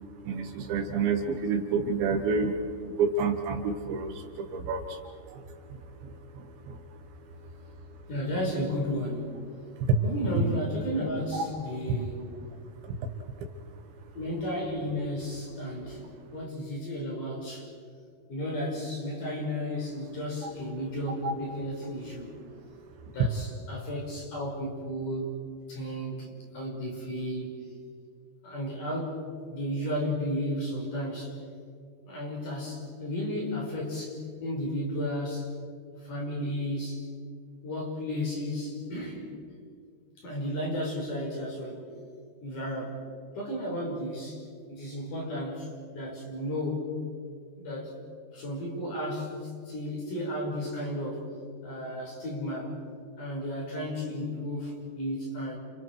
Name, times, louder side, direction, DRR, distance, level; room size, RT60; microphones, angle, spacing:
voice 1, 0.2-6.8 9.8-10.0 11.3-11.4 12.8-13.0 13.4-13.5 21.2-21.3, right 4 dB, 70° right, 4 dB, 3.4 m, -29 dB
voice 2, 8.1-9.3 10.0-12.3 14.1-16.0 16.3-17.7 18.3-22.4 23.1-25.3 25.7-27.7 28.4-29.2 29.5-31.4 32.1-35.5 36.0-37.0 37.6-39.3 40.2-41.9 42.4-43.0 43.3-44.4 44.7-46.9 47.6-47.9 48.3-51.3 51.6-52.7 53.2-55.6, equal, 40° left, -2 dB, 6.6 m, -33 dB
30.0 x 29.5 x 4.7 m, 2.2 s
omnidirectional pair, 5.8 m